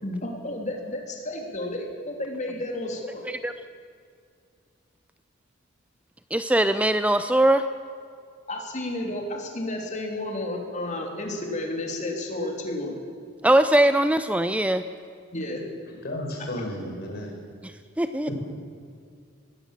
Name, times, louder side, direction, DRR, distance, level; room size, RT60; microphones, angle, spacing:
voice 1, 0.0-3.3 8.5-13.0 15.3-15.6, left 1 dB, 35° left, 1 dB, 3.3 m, -32 dB
voice 2, 6.3-7.6 13.4-14.8 17.6-18.4, right 1 dB, 5° right, 10 dB, 0.5 m, -21 dB
voice 3, 16.0-17.3 18.3-18.4, left 1 dB, 55° left, 1 dB, 5.3 m, -33 dB
20.5 x 17.0 x 7.4 m, 2.2 s
head